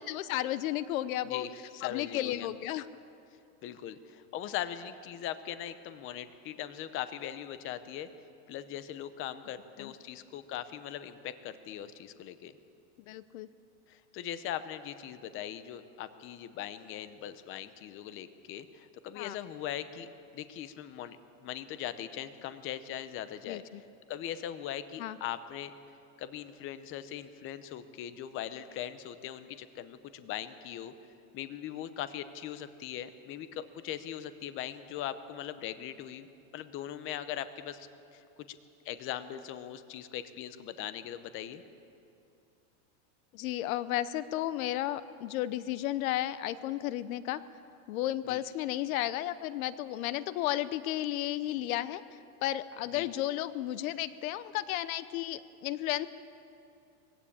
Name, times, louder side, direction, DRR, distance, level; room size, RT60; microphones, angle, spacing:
voice 1, 0.0-1.5 1.8-2.9 9.8-9.9 13.1-13.5 19.1-19.4 23.5-23.8 25.0-25.2 43.3-47.4 47.9-52.0 52.4-56.1, left 14 dB, 70° left, 15 dB, 0.9 m, -33 dB
voice 2, 1.3-2.5 3.6-8.1 8.5-12.5 13.9-21.2 21.4-23.6 24.1-25.7 26.2-30.9 31.3-36.3 36.5-38.2 38.5-38.6 38.8-41.6 48.3-48.4 52.9-53.1, left 11 dB, 30° left, 12 dB, 0.8 m, -40 dB
21.0 x 16.0 x 8.6 m, 2.6 s
supercardioid pair, 150°, 43 cm